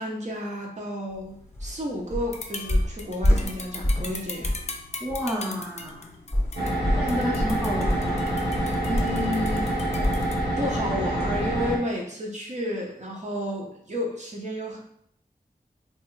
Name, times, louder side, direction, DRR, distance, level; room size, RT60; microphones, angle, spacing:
voice 1, 0.0-4.5 7.2-7.4 8.9-9.6 10.6-14.8, equal, 45° right, -2 dB, 0.7 m, -31 dB
sound 1, 1.1-10.4, left 3 dB, 45° left, 0.4 m, -41 dB
sound 2, 1.6-1.7 2.1-2.4 2.7-4.2 4.4-4.7 5.1-5.2 6.3-10.3 10.6-10.8 11.2-11.3, left 1 dB, 15° left, 0.9 m, -26 dB
voice 2, 5.0-6.1 7.0-8.5, equal, 5° right, -3 dB, 0.6 m, -31 dB
sound 3, 6.6-11.8, right 1 dB, 85° right, 0.7 m, -26 dB
3.0 x 2.3 x 3.1 m, 0.70 s
wide cardioid pair, 65°, 17 cm